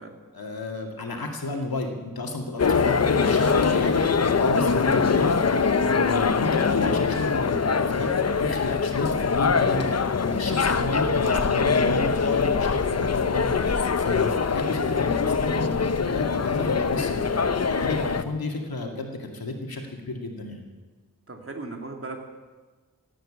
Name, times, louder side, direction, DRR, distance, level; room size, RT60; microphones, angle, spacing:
voice 1, 0.3-20.6, left 2 dB, 80° left, 2 dB, 2.3 m, -32 dB
sound 1, 2.6-18.2, left 5 dB, 45° left, 0.8 m, -23 dB
voice 2, 21.3-22.2, right 3 dB, 40° right, 3 dB, 2.5 m, -37 dB
16.5 x 8.9 x 8.7 m, 1.3 s
wide cardioid pair, 75°, 36 cm